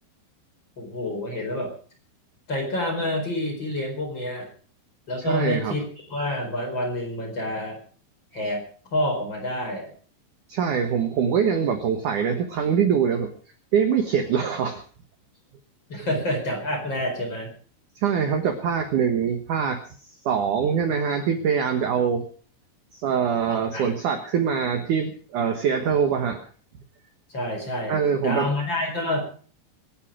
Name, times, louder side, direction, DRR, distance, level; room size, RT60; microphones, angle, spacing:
voice 1, 0.8-1.7 2.5-4.5 5.1-5.8 6.1-7.8 8.3-8.6 8.9-9.9 15.9-17.5 23.5-23.9 27.3-28.0 28.2-29.2, left 1 dB, 25° left, 2 dB, 4.6 m, -28 dB
voice 2, 5.2-5.8 10.5-13.3 13.7-14.8 18.0-19.8 20.3-22.3 22.9-26.4 27.9-28.5, right 7 dB, 75° right, 6 dB, 1.9 m, -23 dB
25.5 x 8.9 x 4.9 m, 0.42 s
omnidirectional pair, 5.7 m